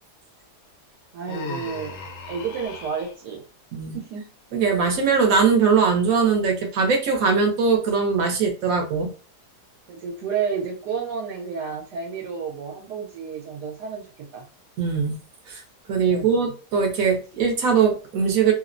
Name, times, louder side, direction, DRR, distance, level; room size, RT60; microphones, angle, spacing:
voice 1, 1.1-2.0 2.3-3.5 3.9-4.2 9.9-14.5 16.1-16.5, right 6 dB, 80° right, 1.2 m, -31 dB
Human voice, 1.3-3.1, left 4 dB, 65° left, 0.8 m, -36 dB
voice 2, 4.5-9.1 14.8-15.1 15.5-15.6 15.9-18.5, right 5 dB, 65° right, 1.0 m, -21 dB
3.1 x 2.0 x 2.4 m
omnidirectional pair, 1.8 m